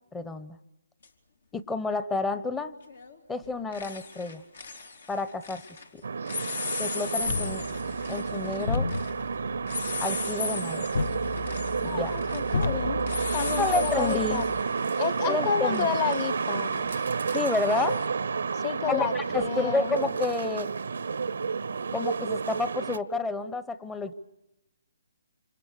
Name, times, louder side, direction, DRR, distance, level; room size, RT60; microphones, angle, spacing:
voice 1, 0.1-0.6 1.5-2.7 3.3-4.4 5.1-5.6 5.9-6.0 6.8-7.6 8.1-8.9 10.0-10.9 11.8-12.1 13.6-14.4 15.3-15.9 17.3-18.1 18.9-20.7 21.9-24.1, left 3 dB, 10° left, 12 dB, 1.0 m, -30 dB
sound 1, 1.0-1.1 2.9-3.2 3.4-5.9 6.2-18.1, left 4 dB, 75° left, 3.7 m, -38 dB
sound 2, 6.0-23.0, right 5 dB, 70° right, 0.8 m, -30 dB
sound 3, 7.2-14.6, left 4 dB, 60° left, 1.1 m, -34 dB
voice 2, 11.8-13.0 13.3-14.5 15.0-16.9 18.5-20.0, left 8 dB, 30° left, 14 dB, 1.3 m, -31 dB
27.5 x 27.0 x 6.7 m, 0.89 s
hypercardioid pair, 150°, 0 cm